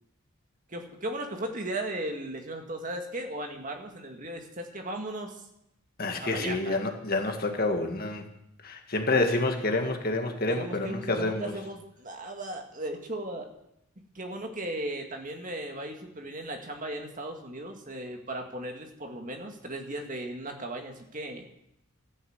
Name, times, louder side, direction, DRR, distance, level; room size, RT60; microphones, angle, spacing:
voice 1, 0.7-5.4 6.2-6.8 10.5-13.5 14.1-21.5, right 1 dB, 35° right, 3 dB, 2.2 m, -36 dB
voice 2, 6.0-8.2 8.6-11.5, left 2 dB, 40° left, 4 dB, 2.0 m, -28 dB
13.5 x 11.0 x 8.1 m, 0.80 s
head